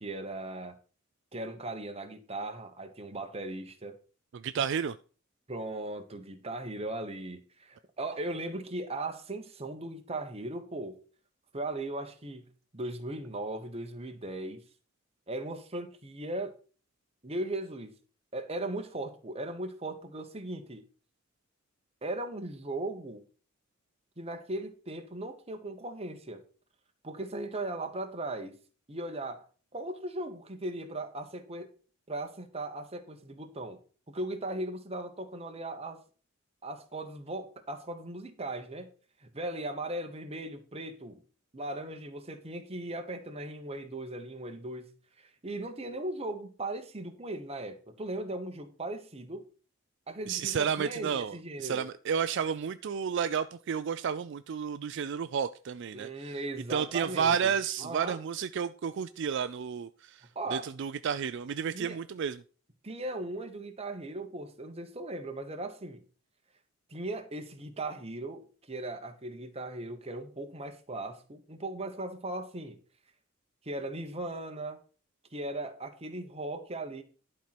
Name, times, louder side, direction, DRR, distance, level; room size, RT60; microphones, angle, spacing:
voice 1, 0.0-0.8 1.3-4.0 5.5-11.0 11.5-12.5 12.7-14.6 15.3-16.6 17.2-17.9 18.3-20.8 22.0-23.2 24.2-26.4 27.0-28.5 28.9-29.4 29.7-31.7 32.1-33.8 34.1-36.0 36.6-38.9 39.2-41.2 41.5-44.9 45.2-49.4 50.1-51.9 55.9-58.2 60.3-60.7 61.7-62.0 62.8-66.0 66.9-72.8 73.6-74.8 75.3-77.0, right 2 dB, 30° right, 1.2 m, -38 dB
voice 2, 4.3-4.9 50.3-51.3 51.6-56.3 56.7-60.2 60.5-62.4, right 7 dB, 60° right, 0.4 m, -31 dB
11.5 x 4.4 x 6.0 m
head